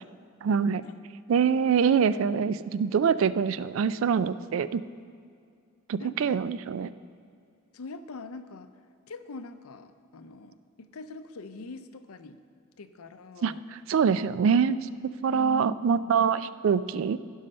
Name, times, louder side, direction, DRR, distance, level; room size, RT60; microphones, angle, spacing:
voice 1, 0.4-0.8 1.3-4.8 5.9-6.9 13.4-13.5 13.9-17.2, right 6 dB, 65° right, 15 dB, 0.3 m, -24 dB
voice 2, 6.0-6.4 7.7-8.7 9.1-12.4 12.8-13.6 15.3-16.3, left 2 dB, 90° left, 11 dB, 0.6 m, -43 dB
16.0 x 5.5 x 5.4 m, 2.3 s
head